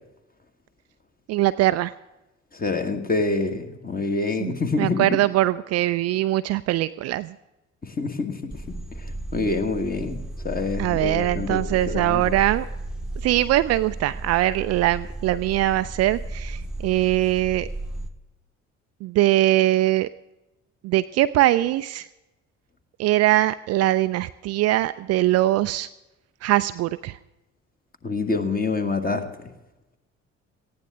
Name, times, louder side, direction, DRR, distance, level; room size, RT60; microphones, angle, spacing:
voice 1, 1.3-1.9 4.4-7.3 10.8-12.7 13.2-17.7 19.0-20.1 20.8-22.1 23.0-25.9 26.4-27.2, right 15 dB, 40° right, 13 dB, 0.4 m, -22 dB
voice 2, 2.5-5.1 7.8-8.5 9.0-12.3 28.0-29.5, left 3 dB, 25° left, 6 dB, 1.7 m, -27 dB
sound 1, 8.5-18.1, right 1 dB, ahead, 1.2 m, -34 dB
18.5 x 15.0 x 3.6 m, 0.98 s
figure-of-eight pair, 50°, 38 cm